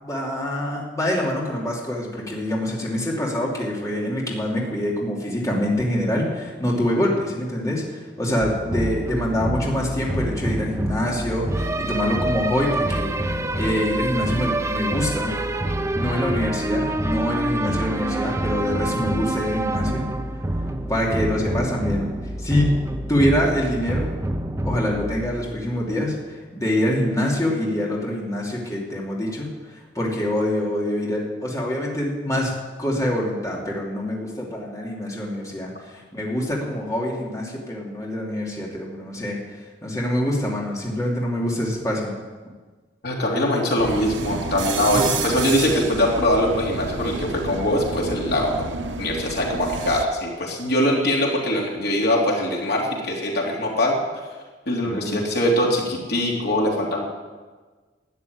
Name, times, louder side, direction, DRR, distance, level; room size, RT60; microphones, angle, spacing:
voice 1, 0.0-13.1 13.6-15.4 15.9-20.1 20.9-22.1 22.4-22.7 23.1-24.1 24.6-32.5 32.8-42.1 54.9-55.2, left 1 dB, 20° left, -3 dB, 2.8 m, -25 dB
sound 1, 8.4-26.0, right 1 dB, 15° right, 0.8 m, -27 dB
voice 2, 43.0-48.5 49.0-54.0 54.7-57.0, left 1 dB, 60° left, -2 dB, 3.2 m, -22 dB
sound 2, 43.8-50.1, right 4 dB, 90° right, 0.9 m, -30 dB
13.0 x 9.5 x 9.4 m, 1.4 s
head